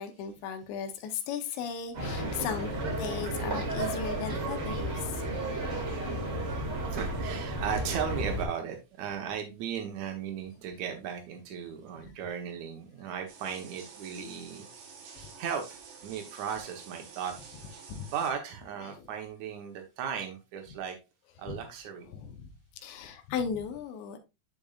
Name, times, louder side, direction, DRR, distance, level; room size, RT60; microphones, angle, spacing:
voice 1, 0.0-2.7 3.0-5.2 14.1-14.3 15.2-15.3 17.9-18.1 18.8-19.1 21.5-21.6 22.1-22.5 22.8-24.2, left 7 dB, 80° left, 3.1 m, -36 dB
sound 1, 1.9-8.5, right 1 dB, 35° right, 1.9 m, -33 dB
voice 2, 6.9-14.7 15.4-17.3 18.0-21.0 21.4-22.1, right 7 dB, 90° right, 1.6 m, -36 dB
sound 2, 13.3-18.3, right 5 dB, 65° right, 3.1 m, -49 dB
10.5 x 5.3 x 2.4 m
omnidirectional pair, 5.1 m